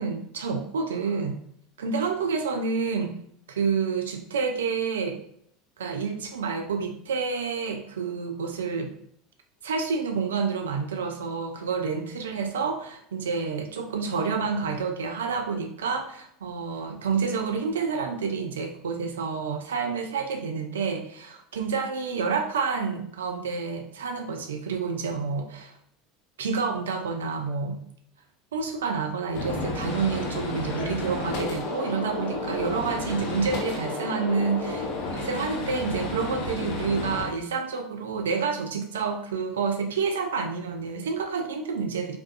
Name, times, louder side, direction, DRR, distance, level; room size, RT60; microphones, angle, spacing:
voice 1, 0.0-1.4 1.8-3.2 3.5-5.2 5.8-8.9 9.6-25.7 26.4-27.8 28.5-34.9 35.1-42.2, right 5 dB, 75° right, 5 dB, 0.3 m, -29 dB
Gunshot gunfire, 29.3-37.2, left 2 dB, 55° left, 0.7 m, -31 dB
2.6 x 2.2 x 2.4 m, 0.66 s
figure-of-eight pair, 75°, 0 cm